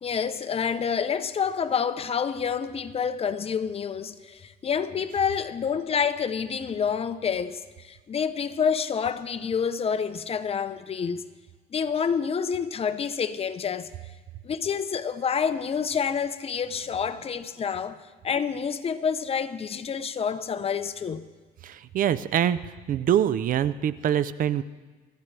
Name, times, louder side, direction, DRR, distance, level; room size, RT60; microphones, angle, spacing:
voice 1, 0.0-11.2 11.7-13.9 14.4-18.0 18.2-21.2, left 6 dB, 35° left, 0.8 m, -28 dB
voice 2, 21.6-22.6 22.9-24.6, right 10 dB, 55° right, 0.6 m, -24 dB
24.0 x 14.0 x 3.4 m
cardioid pair, 110°, 17 cm